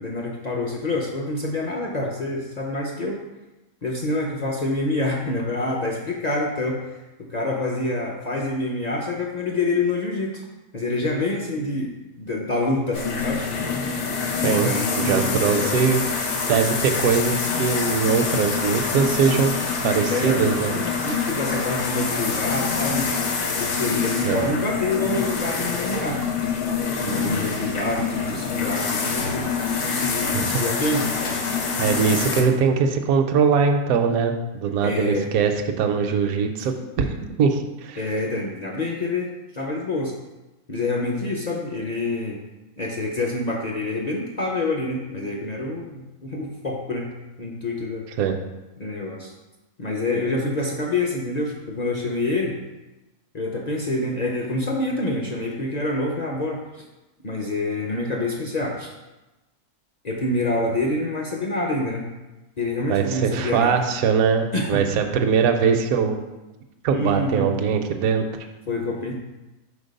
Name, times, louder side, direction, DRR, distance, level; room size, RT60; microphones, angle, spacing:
voice 1, 0.0-3.2 3.8-6.9 7.2-10.4 10.7-11.9 12.2-13.4 14.4-15.8 20.1-20.5 20.9-23.1 23.4-26.2 27.0-29.4 29.8-31.4 34.8-35.3 36.6-36.7 38.0-40.1 40.7-42.4 42.8-48.1 48.8-49.3 49.8-52.6 53.3-56.8 57.2-58.9 60.0-62.0 62.6-63.8 64.5-64.8 66.9-67.5 68.7-69.1, left 2 dB, 50° left, -1 dB, 0.5 m, -27 dB
sound 1, 12.9-32.4, left 5 dB, 85° left, 1.4 m, -26 dB
voice 2, 15.0-16.0 16.5-19.6 19.8-20.8 24.2-24.4 30.2-30.5 31.8-35.5 35.8-38.0 48.2-48.4 62.9-66.2 66.8-68.2, right 6 dB, 70° right, 5 dB, 1.0 m, -21 dB
5.2 x 4.2 x 5.2 m, 1.0 s
omnidirectional pair, 1.6 m